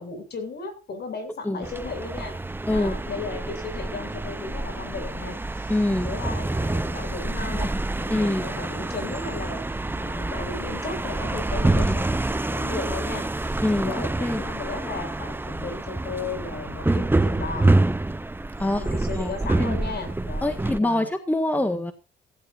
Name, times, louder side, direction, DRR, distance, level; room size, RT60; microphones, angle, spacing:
voice 1, 0.0-2.3 2.7-5.7 6.0-12.0 12.3-17.7 18.6-21.1 21.5-21.8, left 4 dB, 55° left, 7 dB, 7.5 m, -36 dB
sound 1, 1.6-20.8, right 2 dB, 10° right, 0.8 m, -27 dB
voice 2, 2.7-3.0 5.7-6.1 8.1-8.5 11.7-12.0 13.6-14.4 18.6-19.3 19.6-19.8 20.4-21.9, left 1 dB, 10° left, 7 dB, 1.8 m, -25 dB
17.0 x 16.5 x 2.7 m, 0.32 s
cardioid pair, 90°, 20 cm